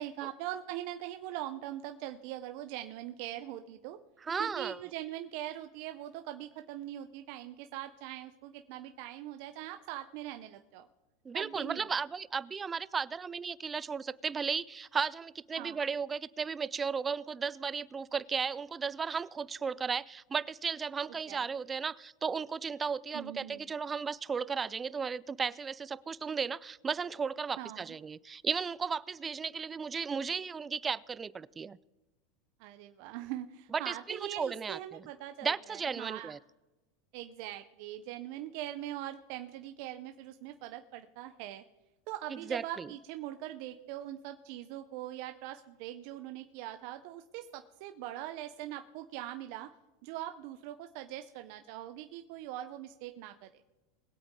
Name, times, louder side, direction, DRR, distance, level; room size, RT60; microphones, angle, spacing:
voice 1, 0.0-4.0 4.4-10.9 11.3-11.9 15.6-15.8 21.3-21.5 23.1-23.7 27.6-27.9 32.6-36.3 37.1-41.6 42.1-49.7 50.0-53.5, right 13 dB, 60° right, 0.7 m, -42 dB
voice 2, 4.2-4.8 11.2-31.8 33.7-35.1 35.4-36.4 42.5-42.9, right 5 dB, 20° right, 0.4 m, -35 dB
21.0 x 8.2 x 3.7 m
supercardioid pair, 130°, 0 cm